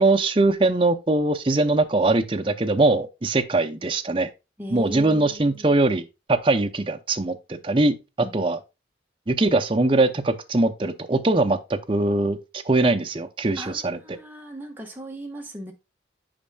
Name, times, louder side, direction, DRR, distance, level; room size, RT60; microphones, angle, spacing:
voice 1, 0.0-4.3 4.7-6.0 6.3-7.9 8.3-8.6 9.3-12.4 12.7-14.0, right 2 dB, 30° right, 0.6 m, -21 dB
voice 2, 4.6-5.8 8.2-8.3 13.5-15.7, equal, 10° right, 1.3 m, -38 dB
8.7 x 5.4 x 2.3 m
head